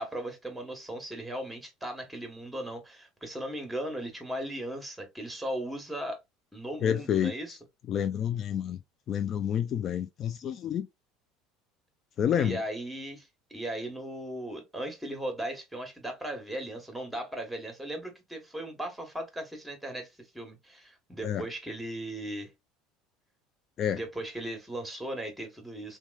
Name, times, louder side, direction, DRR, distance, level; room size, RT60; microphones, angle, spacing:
voice 1, 0.0-6.2 6.5-7.6 12.4-22.5 24.0-26.0, right 1 dB, 5° right, 1.2 m, -37 dB
voice 2, 6.8-7.3 7.9-8.8 9.1-10.9 12.2-12.6 21.2-21.4 23.8-24.0, left 9 dB, 45° left, 0.3 m, -28 dB
2.9 x 2.3 x 2.3 m
hypercardioid pair, 85°, 0 cm